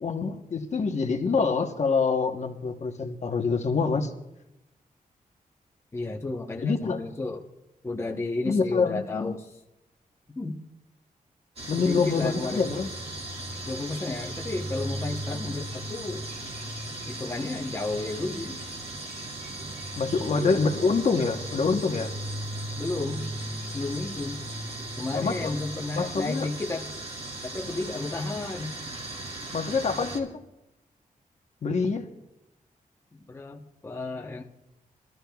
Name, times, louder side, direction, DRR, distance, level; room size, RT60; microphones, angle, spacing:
voice 1, 0.0-4.1 6.6-7.0 8.4-9.4 11.7-12.9 19.9-22.1 25.1-25.5 25.9-26.5 29.5-30.4 31.6-32.1, left 4 dB, 50° left, 4 dB, 1.0 m, -26 dB
voice 2, 5.9-7.4 7.8-9.5 10.4-10.6 11.8-12.7 13.7-16.2 17.1-18.6 20.3-20.7 22.7-24.5 25.0-26.9 27.4-28.8 33.1-34.4, left 2 dB, 20° left, -1 dB, 0.9 m, -33 dB
sound 1, 11.6-30.2, right 1 dB, 45° right, 1.9 m, -37 dB
22.5 x 13.5 x 2.3 m, 0.90 s
wide cardioid pair, 150°, 15 cm